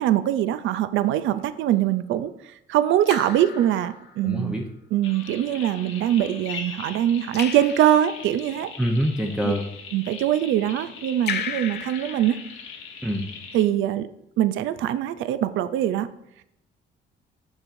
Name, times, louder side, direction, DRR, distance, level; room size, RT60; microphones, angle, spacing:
voice 1, 0.0-4.6 4.9-8.7 9.4-9.5 9.9-12.4 13.5-14.1 14.4-16.1, right 11 dB, 80° right, 13 dB, 0.4 m, -23 dB
Raindrop / Drip, 1.3-1.7 3.1-4.4 7.3-8.5 11.3-13.0, left 8 dB, 55° left, 0.6 m, -35 dB
voice 2, 4.2-4.6 8.8-9.6 13.0-13.3, equal, 5° right, -1 dB, 0.7 m, -25 dB
sound 1, 5.0-13.7, left 5 dB, 80° left, 1.0 m, -40 dB
7.2 x 6.4 x 2.6 m, 0.78 s
cardioid pair, 90°, 20 cm